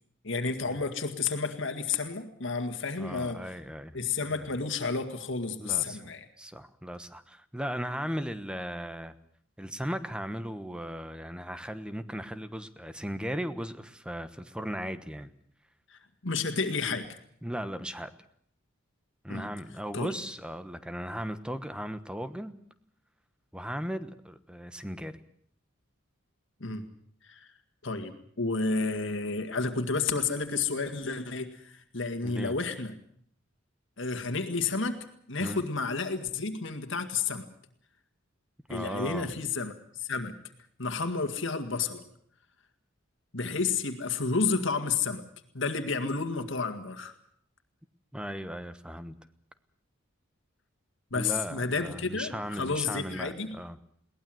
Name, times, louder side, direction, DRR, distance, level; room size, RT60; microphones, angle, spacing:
voice 1, 0.2-3.5 3.9-6.3 15.9-17.2 19.3-19.5 19.9-20.1 26.6-26.9 27.2-27.5 27.8-32.9 34.0-37.5 38.7-40.4 40.8-42.0 43.3-45.2 45.5-47.1 51.1-53.6, left 4 dB, 65° left, 7 dB, 2.0 m, -31 dB
voice 2, 3.0-3.9 4.3-4.5 5.6-6.1 6.4-9.2 9.6-15.3 17.4-18.1 19.2-22.5 23.5-25.1 32.2-32.6 35.4-35.6 38.7-39.3 48.1-49.1 51.1-53.8, equal, 5° right, 11 dB, 1.2 m, -37 dB
22.0 x 18.5 x 7.8 m, 0.64 s
head